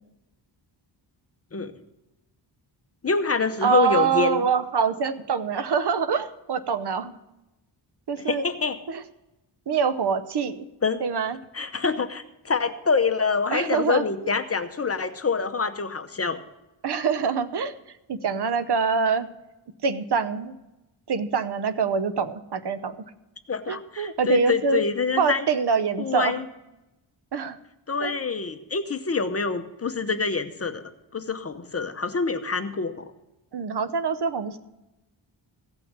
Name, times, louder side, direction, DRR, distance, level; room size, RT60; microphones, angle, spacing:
voice 1, 3.0-4.4 8.3-8.8 10.8-11.0 11.5-16.4 23.5-25.5 26.0-26.4 27.9-33.1, left 4 dB, 30° left, 9 dB, 0.9 m, -26 dB
voice 2, 3.6-7.1 8.1-8.4 8.9-9.0 9.7-10.6 11.0-11.4 13.5-14.3 16.8-17.8 18.1-19.3 19.8-20.5 21.1-23.0 23.7-24.9 25.2-26.5 27.3-27.6 28.0-28.1 33.5-34.6, right 6 dB, 60° right, 12 dB, 0.9 m, -25 dB
16.0 x 5.9 x 7.3 m, 0.96 s
wide cardioid pair, 115°, 46 cm